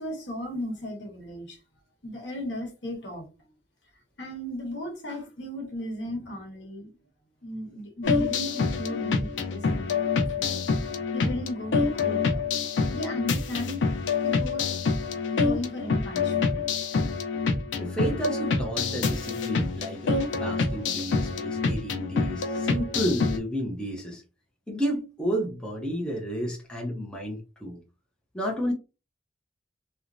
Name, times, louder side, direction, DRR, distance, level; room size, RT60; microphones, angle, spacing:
voice 1, 0.0-1.6 2.0-3.3 4.2-7.0 7.4-10.6 11.1-12.4 12.9-13.9 14.2-14.7 15.3-16.6, left 1 dB, 70° left, 1.0 m, -36 dB
sound 1, 8.0-23.4, left 4 dB, 85° left, 0.5 m, -27 dB
voice 2, 17.8-24.2 24.7-27.8 28.3-28.7, equal, 5° left, 0.6 m, -31 dB
2.9 x 2.1 x 2.5 m
head